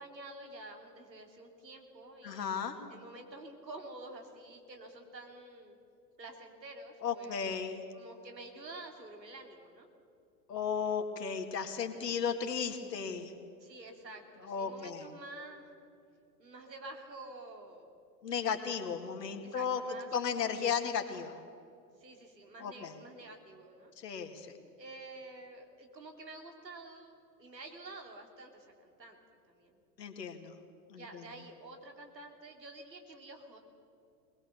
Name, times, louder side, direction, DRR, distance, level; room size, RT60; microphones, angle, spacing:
voice 1, 0.0-5.8 6.2-7.4 7.9-9.9 13.6-15.7 16.4-17.9 19.4-20.1 22.0-23.9 24.8-29.2 29.5-29.8 30.9-33.6, right 2 dB, 85° right, 4 dB, 2.9 m, -49 dB
voice 2, 2.2-2.8 7.0-7.8 10.5-13.3 14.4-15.0 18.2-19.8 20.1-21.3 22.6-23.0 24.0-24.5 30.0-30.6 30.9-31.2, left 6 dB, 75° left, 6 dB, 2.1 m, -35 dB
20.5 x 20.0 x 7.0 m, 2.6 s
figure-of-eight pair, 100°, 49 cm